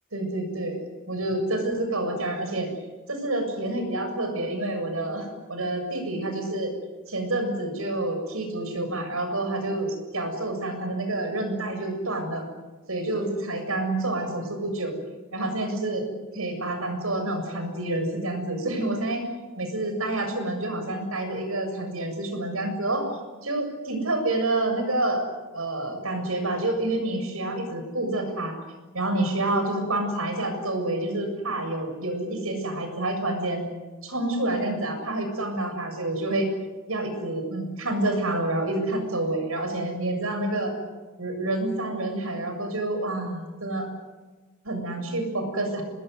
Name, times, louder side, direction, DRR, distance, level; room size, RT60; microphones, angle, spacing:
voice 1, 0.1-2.7 3.1-6.7 7.1-12.4 12.9-14.9 15.3-16.1 16.3-19.2 19.6-23.0 23.4-25.2 25.5-28.6 28.9-33.7 34.0-36.5 36.9-40.7 41.2-43.9 44.6-45.8, right 2 dB, 80° right, 6 dB, 7.2 m, -28 dB
26.0 x 21.0 x 9.4 m, 1.2 s
head